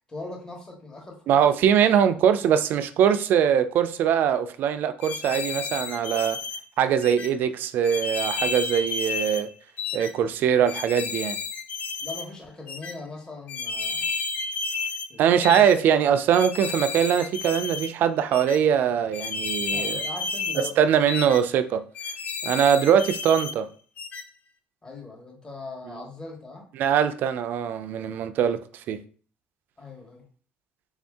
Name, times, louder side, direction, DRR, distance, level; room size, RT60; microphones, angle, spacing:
voice 1, 0.1-1.5 12.0-14.2 15.1-15.6 19.7-20.9 24.8-26.7 29.8-30.2, left 3 dB, 20° left, 1.1 m, -40 dB
voice 2, 1.3-6.4 6.8-9.5 9.9-11.4 15.2-20.0 20.8-21.8 22.4-23.7 26.8-28.6 28.9-29.0, right 8 dB, 55° right, 0.4 m, -22 dB
sound 1, 5.0-6.6 7.0-7.3 7.8-9.4 9.8-10.1 10.7-12.3 12.7-12.9 13.5-15.1 15.4-15.8 16.3-17.9 18.3-18.6 19.1-20.7 21.1-21.4 21.9-23.5 24.0-24.2, left 4 dB, 40° left, 0.4 m, -31 dB
3.5 x 2.6 x 3.5 m
cardioid pair, 125°, 4 cm